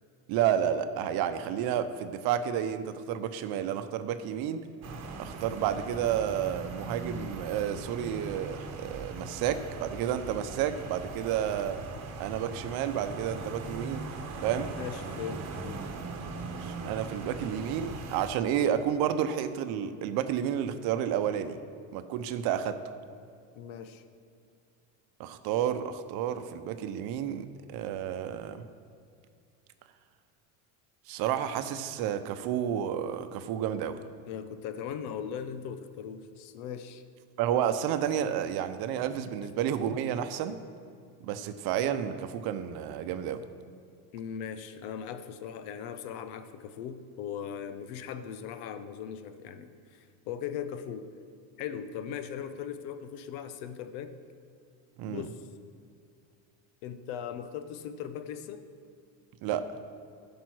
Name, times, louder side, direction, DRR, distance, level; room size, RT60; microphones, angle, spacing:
voice 1, 0.3-4.6 5.2-11.8 12.2-14.1 14.4-14.7 16.6-21.6 21.9-22.8 25.2-28.6 31.1-34.0 37.4-40.6 41.2-43.4 55.0-55.3 59.4-59.7, right 9 dB, 65° right, 10 dB, 0.8 m, -31 dB
sound 1, 4.8-18.3, right 3 dB, 40° right, 1.2 m, -40 dB
voice 2, 14.6-15.8 23.6-24.0 34.3-37.0 39.4-39.5 44.1-51.1 51.6-54.2 55.1-55.4 56.8-58.7, left 8 dB, 85° left, 10 dB, 0.8 m, -39 dB
11.5 x 5.3 x 6.1 m, 2.5 s
cardioid pair, 120°, 40 cm